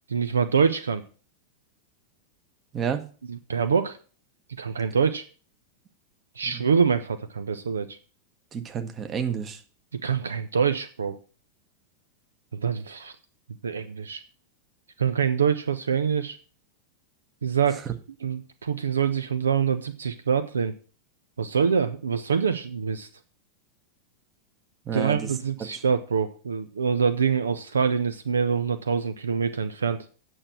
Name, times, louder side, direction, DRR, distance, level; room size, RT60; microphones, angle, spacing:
voice 1, 0.1-1.0 3.3-4.0 4.6-5.2 6.4-8.0 10.0-11.2 12.5-13.1 13.6-14.2 15.0-16.4 17.4-17.8 18.2-20.7 21.4-23.1 24.9-30.0, right 6 dB, 70° right, 11 dB, 0.6 m, -25 dB
voice 2, 8.5-9.6 24.8-25.3 25.7-25.8, right 7 dB, 25° right, 7 dB, 1.2 m, -30 dB
8.8 x 6.3 x 5.9 m, 0.39 s
figure-of-eight pair, 90°, 0 cm